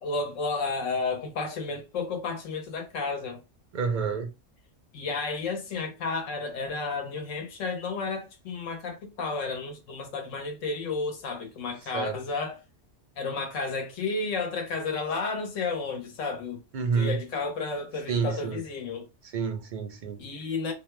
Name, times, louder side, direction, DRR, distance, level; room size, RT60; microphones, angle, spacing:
voice 1, 0.0-3.4 4.9-12.6 13.2-16.6 16.9-19.1 20.2-20.7, left 4 dB, 75° left, 1.1 m, -32 dB
voice 2, 3.7-4.3 11.9-12.2 16.7-17.2 18.1-18.6 19.3-20.2, right 5 dB, 55° right, 0.5 m, -28 dB
2.7 x 2.1 x 3.0 m
omnidirectional pair, 1.3 m